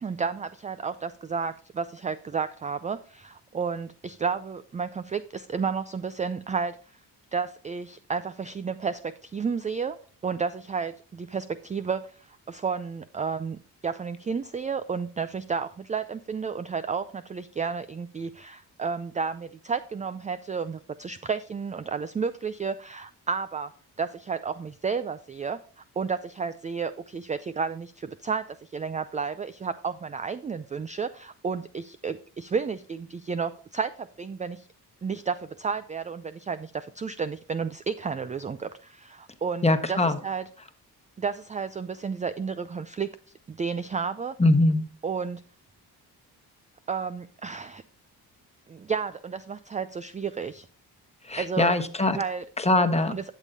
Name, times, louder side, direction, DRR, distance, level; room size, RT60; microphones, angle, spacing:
voice 1, 0.0-6.8 7.3-10.0 10.2-23.7 24.0-34.7 35.0-40.0 40.2-40.4 41.2-43.1 43.5-44.3 45.0-45.4 46.9-47.8 48.7-50.7 51.4-51.8 52.1-52.4 53.1-53.2, right 5 dB, 20° right, 13 dB, 0.4 m, -32 dB
voice 2, 39.6-40.2 44.4-44.8 51.2-52.2 52.6-53.1, left 2 dB, 15° left, 7 dB, 1.2 m, -22 dB
11.5 x 7.3 x 2.7 m, 0.41 s
cardioid pair, 75°, 39 cm